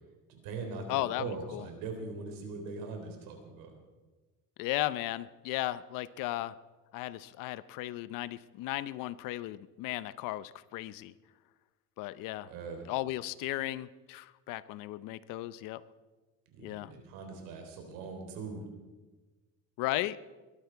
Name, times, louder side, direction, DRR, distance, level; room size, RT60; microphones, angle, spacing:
voice 1, 0.3-3.7 12.5-12.9 16.5-18.6, right 4 dB, 85° right, 4 dB, 3.9 m, -41 dB
voice 2, 0.9-1.7 4.6-6.6 6.9-11.1 12.0-12.5 12.9-15.8 16.6-16.9 19.8-20.2, left 16 dB, 75° left, 17 dB, 0.7 m, -35 dB
21.5 x 12.0 x 4.6 m, 1.3 s
cardioid pair, 145°, 33 cm